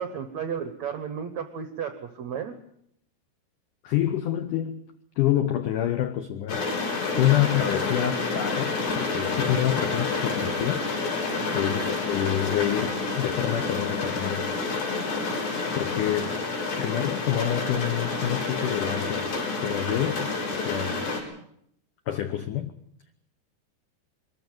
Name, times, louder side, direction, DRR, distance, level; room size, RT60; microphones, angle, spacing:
voice 1, 0.0-2.6 11.4-11.7, right 7 dB, 80° right, 9 dB, 1.6 m, -33 dB
voice 2, 3.8-4.8 5.2-6.6 7.1-11.2 11.5-14.5 15.7-16.4 16.8-21.0 22.1-22.7, left 11 dB, 90° left, 8 dB, 1.8 m, -27 dB
sound 1, 6.5-21.2, left 3 dB, 65° left, 6.7 m, -29 dB
22.5 x 14.0 x 9.4 m, 0.72 s
omnidirectional pair, 5.2 m